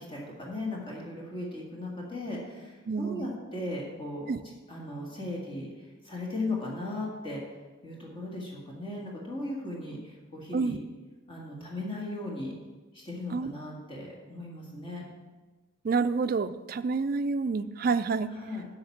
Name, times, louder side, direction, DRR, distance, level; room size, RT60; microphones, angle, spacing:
voice 1, 0.0-4.3 4.7-7.4 7.8-10.8 11.3-12.5 12.9-15.0 18.3-18.7, left 2 dB, 25° left, -3 dB, 1.7 m, -37 dB
voice 2, 2.9-3.3 4.3-4.4 10.5-10.8 13.3-13.5 15.8-18.3, right 4 dB, 45° right, 12 dB, 0.3 m, -28 dB
7.8 x 5.9 x 7.1 m, 1.2 s
head